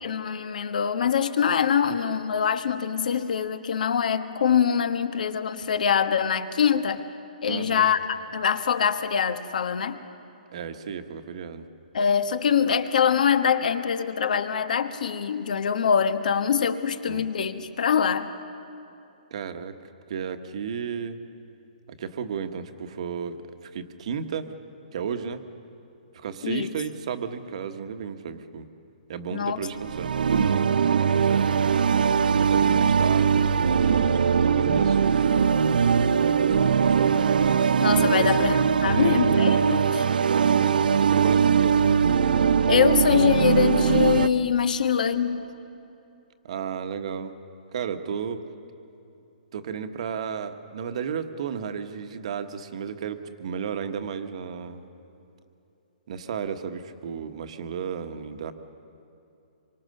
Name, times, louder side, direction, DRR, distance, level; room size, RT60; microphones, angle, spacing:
voice 1, 0.0-7.1 7.4-8.0 8.3-10.0 11.9-18.3 26.4-26.7 29.3-29.6 37.8-40.0 42.7-45.5, left 7 dB, 60° left, 10 dB, 1.3 m, -24 dB
voice 2, 7.5-7.9 10.5-11.7 17.1-17.2 19.3-19.7 20.1-21.2 22.0-24.5 24.9-25.4 26.1-28.7 29.1-31.7 32.4-35.5 36.2-37.2 38.1-38.3 38.9-39.4 40.2-42.0 46.4-47.3 47.7-48.4 49.5-54.8 56.1-58.5, right 7 dB, 45° right, 8 dB, 1.3 m, -33 dB
sound 1, 29.7-44.3, right 6 dB, 80° right, 0.7 m, -21 dB
26.0 x 24.0 x 6.6 m, 2.8 s
hypercardioid pair, 170°, 5 cm